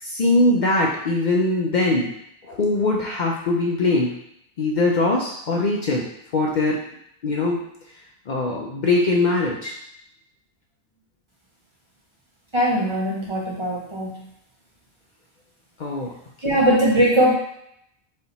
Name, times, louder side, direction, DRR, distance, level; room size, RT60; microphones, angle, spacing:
voice 1, 0.0-2.1 2.4-4.1 4.6-6.8 7.2-7.6 8.3-9.7 15.8-16.1 16.4-16.6, left 2 dB, 55° left, -2 dB, 0.6 m, -21 dB
voice 2, 12.5-14.2 16.4-17.3, equal, 30° right, -4 dB, 1.0 m, -20 dB
4.2 x 2.9 x 4.0 m, 0.75 s
omnidirectional pair, 1.1 m